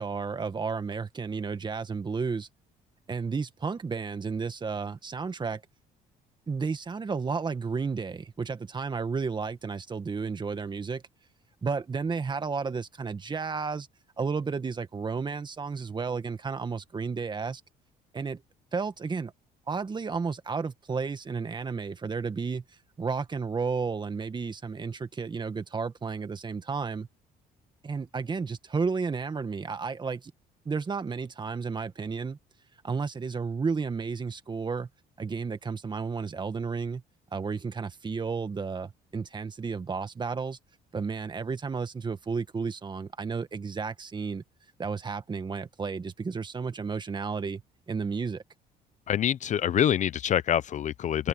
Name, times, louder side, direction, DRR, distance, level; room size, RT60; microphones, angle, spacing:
voice 1, 0.0-2.5 3.1-5.6 6.5-11.0 11.6-13.9 14.2-17.6 18.1-18.4 18.7-19.3 19.7-22.6 23.0-27.1 27.8-30.3 30.7-32.4 32.8-34.9 35.2-37.0 37.3-40.6 40.9-44.4 44.8-47.6 47.9-48.4, right 5 dB, 25° right, 1.7 m, -32 dB
voice 2, 49.1-51.3, left 10 dB, 45° left, 0.6 m, -26 dB
cardioid pair, 110°, 17 cm